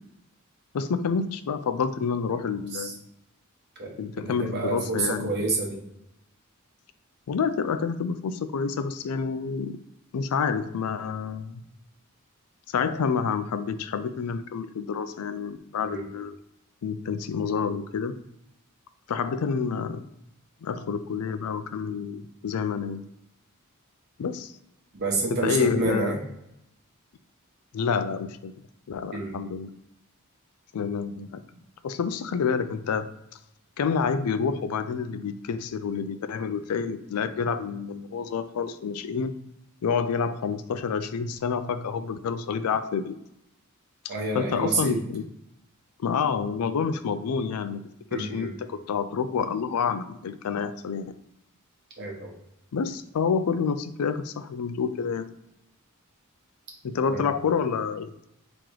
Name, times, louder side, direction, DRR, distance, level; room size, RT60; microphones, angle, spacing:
voice 1, 0.7-3.0 4.0-5.3 7.3-9.8 10.1-11.6 12.7-16.4 16.8-18.2 19.1-20.0 20.6-23.0 24.2-24.5 25.3-26.1 27.7-28.5 28.9-29.7 30.7-31.4 31.8-33.1 33.8-39.4 39.8-43.1 44.0-45.2 46.0-47.8 48.1-51.1 52.7-55.3 56.8-58.1, left 6 dB, 85° left, 11 dB, 0.4 m, -28 dB
voice 2, 4.3-5.8 15.8-16.0 24.9-26.2 29.1-29.3 44.1-45.0 48.1-48.5 52.0-52.3 57.0-57.2, right 3 dB, 50° right, -1 dB, 1.1 m, -28 dB
3.8 x 3.0 x 4.6 m, 0.81 s
head